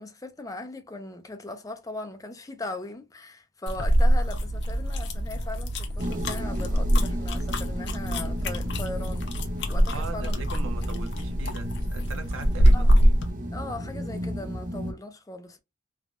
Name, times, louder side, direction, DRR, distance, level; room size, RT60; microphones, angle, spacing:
voice 1, 0.0-9.3 9.7-10.4 12.7-13.0 13.5-15.6, left 2 dB, 15° left, 0.4 m, -39 dB
sound 1, 3.7-13.3, equal, 60° left, 0.6 m, -24 dB
sound 2, 6.0-14.9, equal, 40° right, 0.5 m, -35 dB
voice 2, 9.9-13.1, right 4 dB, 85° right, 0.8 m, -40 dB
3.4 x 2.2 x 2.4 m
head